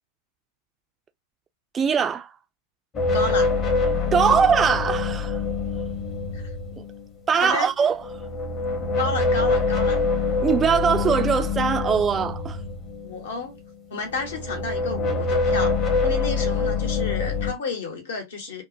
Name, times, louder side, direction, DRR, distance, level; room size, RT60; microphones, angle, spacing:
voice 1, 1.7-2.3 4.1-5.4 6.8-6.9 7.3-8.0 10.4-12.6, right 7 dB, 20° right, 0.3 m, -21 dB
sound 1, 2.9-7.1 7.9-13.7 14.0-17.5, left 3 dB, 30° left, 0.8 m, -25 dB
voice 2, 3.1-3.5 6.3-6.5 7.4-7.7 9.0-10.0 13.0-13.6 13.9-18.6, left 3 dB, 60° left, 0.9 m, -31 dB
2.5 x 2.1 x 2.5 m
figure-of-eight pair, 90°, 0 cm